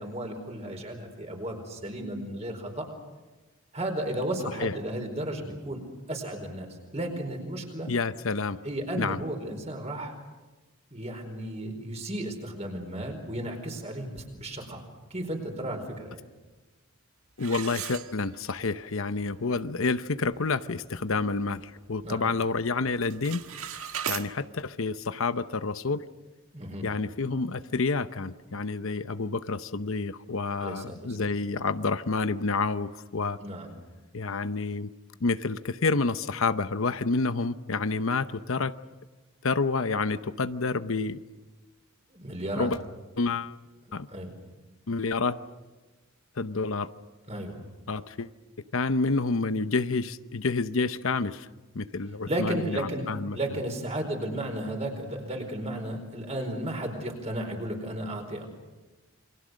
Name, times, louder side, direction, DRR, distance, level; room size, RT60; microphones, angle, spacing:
voice 1, 0.0-2.9 3.7-7.9 8.6-10.2 10.9-14.8 15.1-16.2 22.0-22.3 26.5-26.9 30.6-31.4 33.4-33.7 42.1-42.7 44.1-44.3 47.3-47.6 52.3-58.5, right 1 dB, 30° right, 4 dB, 4.6 m, -34 dB
voice 2, 7.9-8.6 8.9-9.2 17.4-23.4 23.7-26.0 26.8-33.4 34.1-34.9 35.2-38.7 39.4-41.2 42.5-42.8 43.2-43.5 43.9-44.1 44.9-45.4 46.4-46.9 47.9-48.3 48.7-51.5 51.7-53.4, left 3 dB, 65° left, 12 dB, 0.8 m, -29 dB
sound 1, 17.4-18.7 19.1-19.2 19.8-19.9 20.3-20.6 21.0-22.1 22.4-22.7 23.0-24.3, right 8 dB, 75° right, 1.6 m, -37 dB
28.5 x 24.0 x 6.5 m, 1.2 s
head